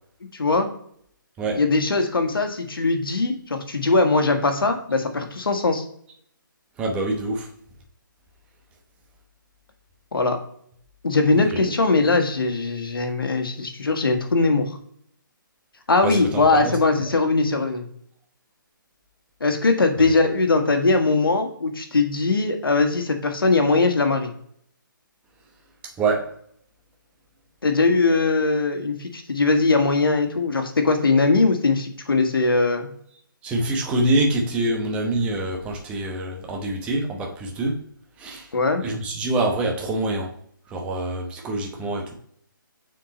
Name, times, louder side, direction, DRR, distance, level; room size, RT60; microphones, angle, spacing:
voice 1, 0.3-0.7 1.5-5.8 10.1-10.4 11.0-14.8 15.9-17.9 19.4-24.3 27.6-32.9 38.5-38.8, left 3 dB, 90° left, 5 dB, 1.4 m, -20 dB
voice 2, 6.8-7.5 16.0-16.2 16.5-16.8 26.0-26.3 33.4-37.8 38.2-38.4 38.8-40.3 40.7-42.1, right 2 dB, 10° right, 0 dB, 0.9 m, -25 dB
6.9 x 4.5 x 4.0 m, 0.64 s
hypercardioid pair, 160°, 11 cm